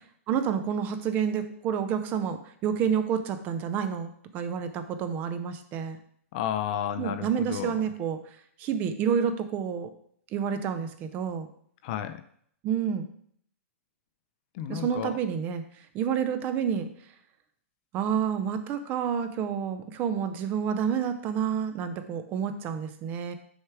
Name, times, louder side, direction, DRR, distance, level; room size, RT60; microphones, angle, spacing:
voice 1, 0.3-6.0 7.0-8.2 8.6-9.9 10.3-11.5 12.6-13.1 14.7-15.6 15.9-16.9 17.9-23.3, right 7 dB, 20° right, 10 dB, 0.5 m, -29 dB
voice 2, 6.3-7.8 11.8-12.2 14.5-15.2, left 10 dB, 35° left, 11 dB, 0.5 m, -32 dB
6.4 x 4.6 x 4.7 m, 0.63 s
hypercardioid pair, 160°, 8 cm